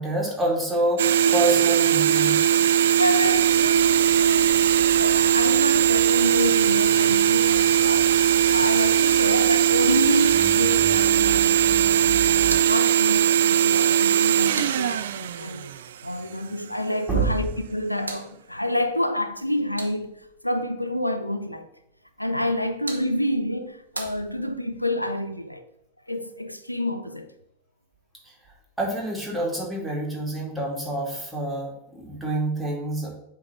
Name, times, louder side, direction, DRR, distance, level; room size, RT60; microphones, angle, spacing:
voice 1, 0.0-2.4 17.1-17.3 28.8-33.2, right 2 dB, 5° right, 2.6 m, -27 dB
sound 1, 1.0-16.2, right 10 dB, 60° right, 0.4 m, -20 dB
voice 2, 1.2-1.7 2.9-8.1 8.5-11.6 11.9-12.3 12.6-15.7 16.0-21.7 22.2-25.6 26.1-27.3, left 1 dB, 90° left, 0.6 m, -28 dB
Engine, 3.3-12.6, right 5 dB, 20° right, 2.2 m, -40 dB
sound 2, 17.4-20.4 22.4-24.8, right 2 dB, 80° right, 1.0 m, -41 dB
7.9 x 3.6 x 6.0 m
figure-of-eight pair, 90°, 0 cm